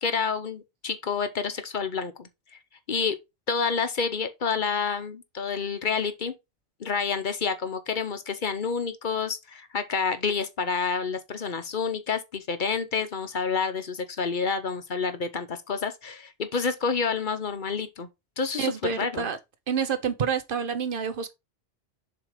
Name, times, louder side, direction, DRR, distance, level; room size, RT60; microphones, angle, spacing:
voice 1, 0.0-2.3 2.9-3.2 3.5-6.3 6.8-18.1 18.4-19.3, left 5 dB, 55° left, 0.8 m, -29 dB
voice 2, 18.6-19.4 19.7-21.3, right 6 dB, 55° right, 0.9 m, -28 dB
7.1 x 2.9 x 4.9 m
omnidirectional pair, 1.1 m